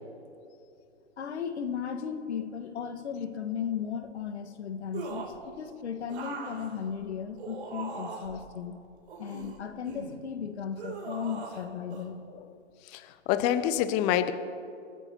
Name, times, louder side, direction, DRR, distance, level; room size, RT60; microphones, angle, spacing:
voice 1, 1.2-8.7 9.2-12.2, left 7 dB, 65° left, 6 dB, 1.5 m, -36 dB
sound 1, 4.9-5.4 6.1-8.4 9.1-10.2 10.8-11.6 11.9-12.1, right 4 dB, 60° right, 3.1 m, -40 dB
voice 2, 12.9-14.3, left 11 dB, 20° left, 11 dB, 0.6 m, -27 dB
29.0 x 13.5 x 2.9 m, 2.6 s
hypercardioid pair, 130°, 36 cm